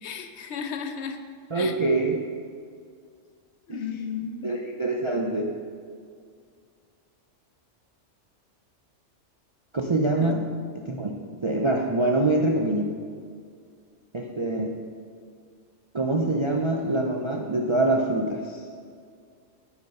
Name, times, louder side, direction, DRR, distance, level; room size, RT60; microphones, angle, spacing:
voice 1, 0.0-1.2 1.5-1.7 3.7-4.6 10.2-10.3, left 6 dB, 65° left, 7 dB, 0.9 m, -34 dB
voice 2, 1.5-2.2 3.7-3.8 4.4-5.5 9.7-10.5 10.7-12.9 14.1-14.7 15.9-18.6, right 2 dB, 45° right, 0 dB, 0.4 m, -25 dB
9.6 x 5.4 x 5.4 m, 2.1 s
omnidirectional pair, 1.3 m